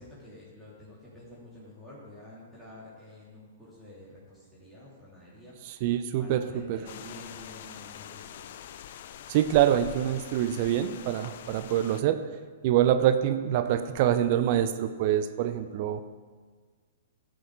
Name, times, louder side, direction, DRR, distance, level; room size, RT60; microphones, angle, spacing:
voice 1, 0.0-5.8 6.2-8.5, left 1 dB, 5° right, -10 dB, 2.9 m, -49 dB
voice 2, 5.8-6.8 9.3-12.2 12.6-16.0, right 11 dB, 45° right, 10 dB, 0.6 m, -25 dB
sound 1, 6.9-12.0, left 10 dB, 55° left, 0.4 m, -44 dB
12.5 x 6.4 x 5.3 m, 1.5 s
figure-of-eight pair, 115°, 0 cm